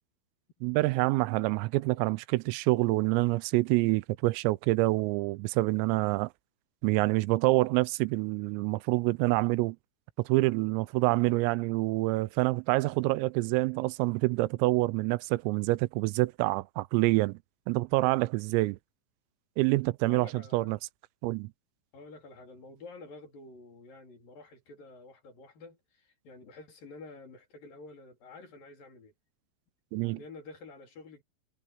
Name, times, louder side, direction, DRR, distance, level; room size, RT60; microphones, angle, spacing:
voice 1, 0.6-6.3 6.8-9.8 10.2-17.4 17.7-18.8 19.6-20.8 21.2-21.5 29.9-30.2, right 22 dB, 85° right, 3.3 m, -27 dB
voice 2, 20.1-20.7 21.9-29.1 29.9-31.2, left 3 dB, 45° left, 4.9 m, -49 dB
omnidirectional pair, 6.0 m